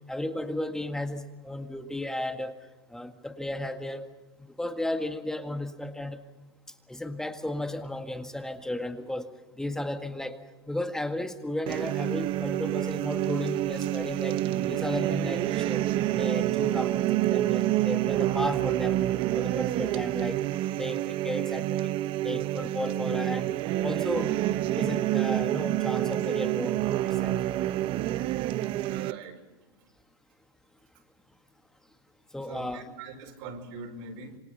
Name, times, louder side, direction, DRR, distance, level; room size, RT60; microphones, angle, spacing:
voice 1, 0.1-2.6 2.9-4.1 4.6-6.2 6.9-9.3 9.5-10.4 10.7-14.4 14.7-15.8 16.1-19.0 19.3-20.4 20.8-21.9 22.2-23.5 23.8-24.3 24.8-27.4 32.3-32.8, left 1 dB, 5° left, 1.9 m, -34 dB
sound 1, 11.7-29.1, right 14 dB, 40° right, 0.9 m, -28 dB
voice 2, 28.8-29.4 32.5-34.4, right 5 dB, 60° right, 5.4 m, -41 dB
27.5 x 25.0 x 5.7 m
hypercardioid pair, 110°, 13 cm